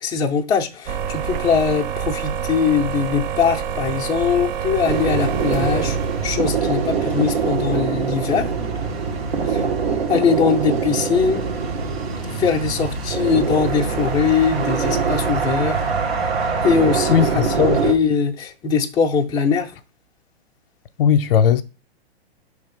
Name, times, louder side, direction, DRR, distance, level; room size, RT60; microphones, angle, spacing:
voice 1, 0.0-6.0 6.2-8.5 9.5-9.6 10.1-11.4 12.3-15.9 16.6-19.7, left 6 dB, 15° left, 0.5 m, -21 dB
sound 1, 0.9-6.8, right 8 dB, 45° right, 0.5 m, -27 dB
sound 2, 4.8-17.9, right 5 dB, 70° right, 1.7 m, -23 dB
voice 2, 17.1-17.8 21.0-21.6, left 8 dB, 60° left, 0.6 m, -17 dB
5.5 x 3.4 x 5.2 m
hypercardioid pair, 120°, 32 cm